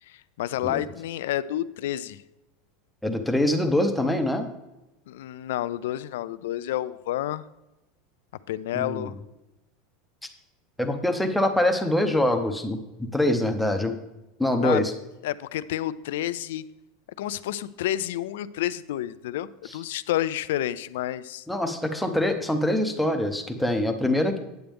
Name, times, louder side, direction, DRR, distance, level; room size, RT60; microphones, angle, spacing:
voice 1, 0.0-2.2 5.1-7.4 8.5-9.2 11.1-11.3 14.6-14.8 15.2-16.6 17.2-21.5, left 13 dB, 80° left, 16 dB, 0.4 m, -30 dB
voice 2, 3.0-4.5 8.7-9.1 10.8-12.8 13.1-13.9 14.4-14.9 21.5-24.4, left 1 dB, ahead, 5 dB, 0.6 m, -24 dB
8.9 x 8.0 x 3.5 m, 0.97 s
supercardioid pair, 180°, 0 cm